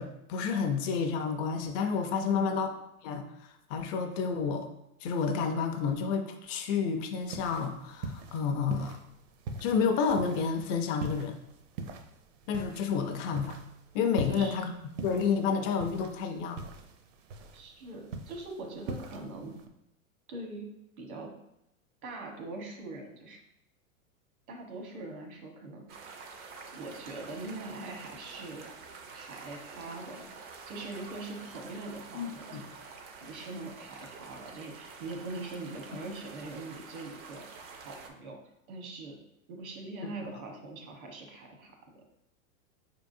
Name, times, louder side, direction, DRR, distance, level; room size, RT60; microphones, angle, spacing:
voice 1, 0.0-2.7 3.0-3.3 3.7-4.7 5.0-9.0 9.6-11.4 12.5-13.6 13.9-14.7 15.0-16.6 32.1-32.6 40.0-40.1, left 6 dB, 35° left, 5 dB, 0.5 m, -30 dB
voice 2, 2.2-2.6 14.2-14.5 17.5-19.6 20.3-21.3 22.0-23.4 24.5-26.0 26.7-28.7 29.1-30.3 30.7-32.7 33.2-38.4 38.7-39.2 39.5-42.0, right 2 dB, 80° right, 2 dB, 1.3 m, -42 dB
sound 1, 7.2-19.7, right 3 dB, 60° right, 0.7 m, -43 dB
sound 2, 25.9-38.1, right 4 dB, 25° right, 0.4 m, -48 dB
4.7 x 3.7 x 2.6 m, 0.83 s
hypercardioid pair, 120°, 42 cm